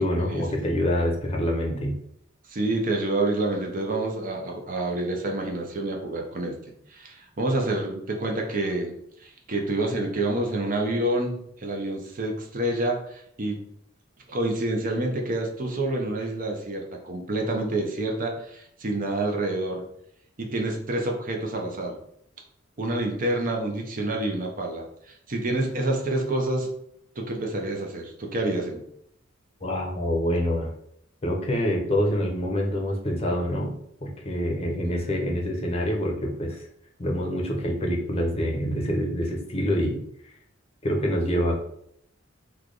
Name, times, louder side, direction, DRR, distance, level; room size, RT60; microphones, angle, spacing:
voice 1, 0.0-2.0 29.6-30.7 31.2-36.7 37.0-40.0 40.8-41.6, equal, 30° left, 0 dB, 0.7 m, -26 dB
voice 2, 2.5-6.6 6.9-8.9 9.2-13.6 14.3-19.8 20.4-22.0 22.8-26.7 27.2-28.8, right 2 dB, 45° right, 2 dB, 0.6 m, -28 dB
3.2 x 2.3 x 3.8 m, 0.70 s
head